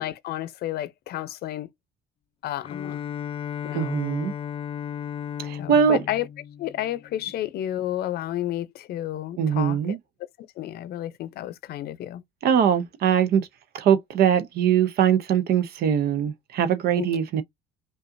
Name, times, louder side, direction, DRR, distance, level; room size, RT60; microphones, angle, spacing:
voice 1, 0.0-1.7 2.4-3.0 3.6-4.0 5.6-6.3 6.6-10.0 10.6-12.2 17.0-17.1, left 13 dB, 70° left, 0.7 m, -31 dB
Bowed string instrument, 2.6-7.4, left 9 dB, 35° left, 0.4 m, -35 dB
voice 2, 3.7-4.3 5.4-6.0 9.4-10.0 12.4-13.5 13.7-17.4, right 8 dB, 65° right, 0.8 m, -22 dB
5.4 x 2.5 x 2.6 m
cardioid pair, 110°, 17 cm